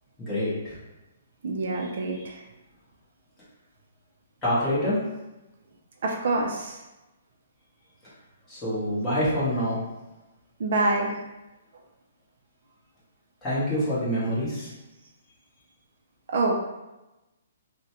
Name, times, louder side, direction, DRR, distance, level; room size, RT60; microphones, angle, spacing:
voice 1, 0.2-0.8 4.4-5.0 8.5-9.8 13.4-14.7, equal, 10° left, -10 dB, 0.8 m, -26 dB
voice 2, 1.4-2.4 6.0-6.8 10.6-11.1 16.3-16.5, right 2 dB, 55° right, 1 dB, 0.3 m, -26 dB
2.4 x 2.1 x 2.8 m, 1.0 s
hypercardioid pair, 170°, 0 cm